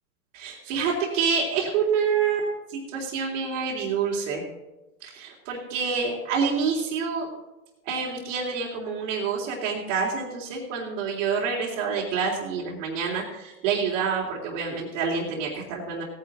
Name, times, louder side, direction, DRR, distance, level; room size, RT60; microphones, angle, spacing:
voice 1, 0.3-4.4 5.0-7.3 7.8-16.0, right 5 dB, 50° right, -4 dB, 3.4 m, -27 dB
18.0 x 9.7 x 3.7 m, 1.0 s
hypercardioid pair, 135°, 46 cm